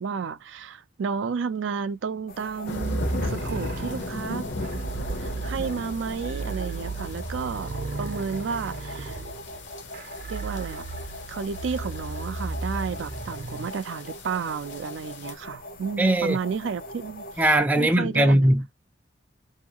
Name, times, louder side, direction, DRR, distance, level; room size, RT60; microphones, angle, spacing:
voice 1, 0.0-4.5 5.2-9.2 10.3-10.8 11.3-17.5 17.8-18.5, right 6 dB, 90° right, 0.4 m, -32 dB
sound 1, 2.3-17.6, left 1 dB, 50° left, 0.6 m, -42 dB
sound 2, 2.7-15.3, left 2 dB, 80° left, 0.8 m, -38 dB
sound 3, 2.7-13.7, right 3 dB, 50° right, 0.7 m, -35 dB
voice 2, 16.0-16.4 17.4-18.7, right 1 dB, 10° right, 0.4 m, -20 dB
2.7 x 2.3 x 2.8 m
head